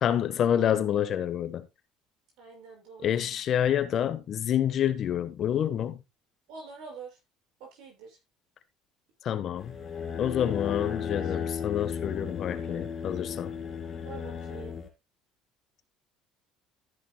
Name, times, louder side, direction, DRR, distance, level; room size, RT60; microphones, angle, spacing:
voice 1, 0.0-1.7 3.0-6.0 9.2-9.8 10.2-13.5, left 10 dB, 40° left, 1.1 m, -28 dB
voice 2, 2.4-3.2 6.5-7.2 7.6-8.2 10.6-10.9 11.2-11.3 14.0-14.8, right 5 dB, 75° right, 6.7 m, -45 dB
sound 1, 9.6-14.9, left 7 dB, 25° left, 2.4 m, -35 dB
13.5 x 10.5 x 2.3 m
cardioid pair, 150°, 0 cm